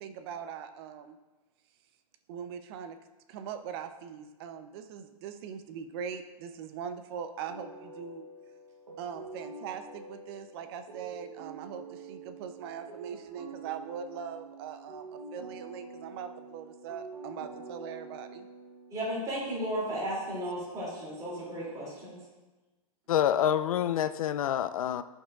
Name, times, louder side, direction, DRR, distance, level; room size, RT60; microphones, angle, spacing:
voice 1, 0.0-1.2 2.3-3.0 3.3-8.3 9.0-18.5, right 7 dB, 40° right, 9 dB, 0.6 m, -41 dB
sound 1, 7.5-19.2, right 3 dB, 90° right, 1.2 m, -47 dB
voice 2, 18.9-22.2, equal, 20° right, -7 dB, 2.7 m, -34 dB
voice 3, 23.1-25.0, left 10 dB, 70° left, 11 dB, 0.4 m, -27 dB
13.0 x 5.4 x 2.4 m, 1.2 s
hypercardioid pair, 140°, 19 cm